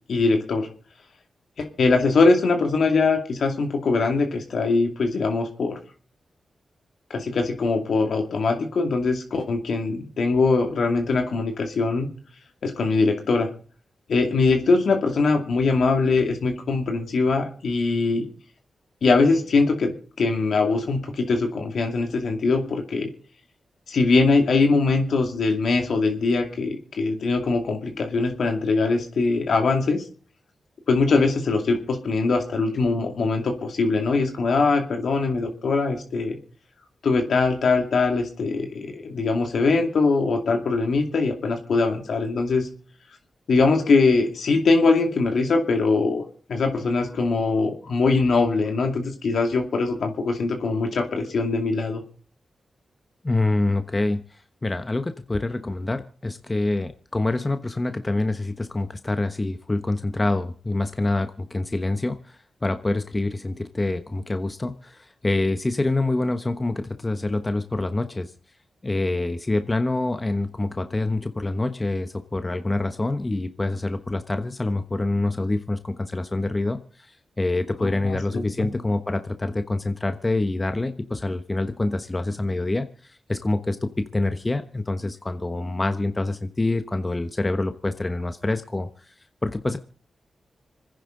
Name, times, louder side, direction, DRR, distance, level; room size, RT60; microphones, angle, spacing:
voice 1, 0.1-0.7 1.6-5.8 7.1-12.1 12.6-13.5 14.1-18.3 19.0-23.1 23.9-30.0 30.9-36.4 37.0-42.7 43.5-52.0 77.8-78.7, left 3 dB, 75° left, 4 dB, 2.4 m, -22 dB
voice 2, 53.2-68.3 68.8-89.1 89.4-89.8, left 2 dB, 30° left, 8 dB, 1.1 m, -26 dB
26.5 x 10.0 x 3.9 m, 0.43 s
supercardioid pair, 40°, 0 cm